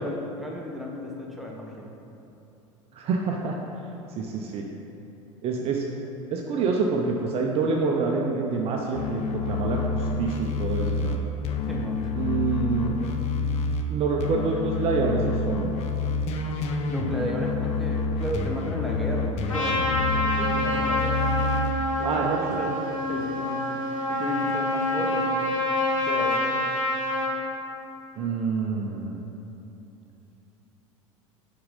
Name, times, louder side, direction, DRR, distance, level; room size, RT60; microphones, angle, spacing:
voice 1, 0.0-1.9 11.6-12.4 12.7-13.2 16.9-21.5 22.0-22.7 23.1-23.8 24.1-25.5 26.0-26.7, left 1 dB, ahead, -2 dB, 0.9 m, -34 dB
voice 2, 2.9-3.6 4.2-4.6 5.4-5.8 6.3-11.2 12.1-12.9 13.9-15.7 22.0-22.6 28.2-29.2, right 4 dB, 35° right, 0 dB, 0.5 m, -27 dB
sound 1, 8.9-13.9 14.2-21.7, left 3 dB, 40° left, 0.5 m, -28 dB
Trumpet, 19.5-27.3, left 1 dB, 85° left, 0.9 m, -27 dB
5.8 x 3.7 x 5.1 m, 3.0 s
figure-of-eight pair, 75°, 17 cm